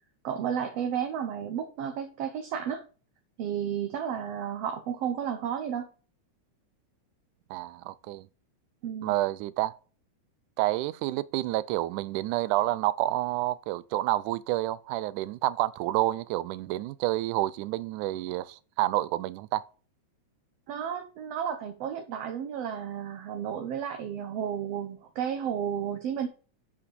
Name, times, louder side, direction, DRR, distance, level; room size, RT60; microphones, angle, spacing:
voice 1, 0.2-2.8 3.4-5.9 8.8-9.2 20.7-26.3, right 8 dB, 65° right, 1.8 m, -32 dB
voice 2, 7.5-8.3 9.0-9.7 10.6-19.6, right 16 dB, 90° right, 2.1 m, -29 dB
8.2 x 5.1 x 6.8 m
omnidirectional pair, 3.5 m